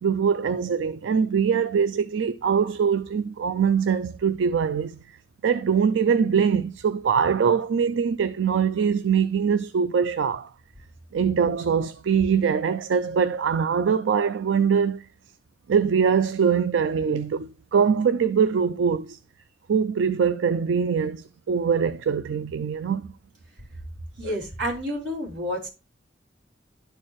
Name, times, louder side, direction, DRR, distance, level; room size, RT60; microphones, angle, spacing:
voice 1, 0.0-5.0 5.4-10.5 11.1-15.1 15.7-19.2 19.7-23.1 24.2-24.4, right 6 dB, 85° right, 0.4 m, -23 dB
voice 2, 24.2-25.7, equal, 70° right, 3.4 m, -29 dB
11.5 x 4.5 x 3.0 m
head